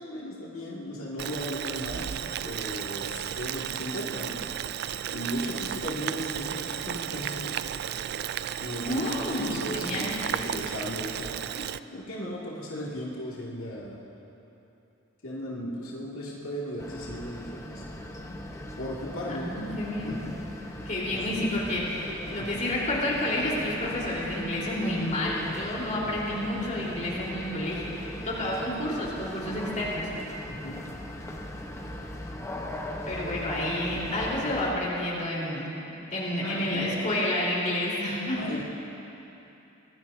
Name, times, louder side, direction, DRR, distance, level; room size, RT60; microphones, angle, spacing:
voice 1, 0.0-4.4 5.1-7.6 8.6-9.0 9.4-14.0 15.2-17.8 18.2-18.4 18.8-19.6 20.0-21.4 22.4-22.7 26.0-26.5 30.5-30.8 36.4-36.9 38.4-38.6, equal, 85° left, -6 dB, 2.3 m, -37 dB
Boiling, 1.2-11.8, right 10 dB, 50° right, 0.3 m, -34 dB
voice 2, 8.8-9.5 9.7-10.1 19.3-20.2 20.9-30.1 33.1-35.7 36.1-38.5, left 1 dB, 40° left, -6 dB, 4.0 m, -30 dB
sound 1, 16.8-34.7, left 1 dB, 15° left, 1.0 m, -39 dB
25.0 x 18.0 x 2.8 m, 3.0 s
head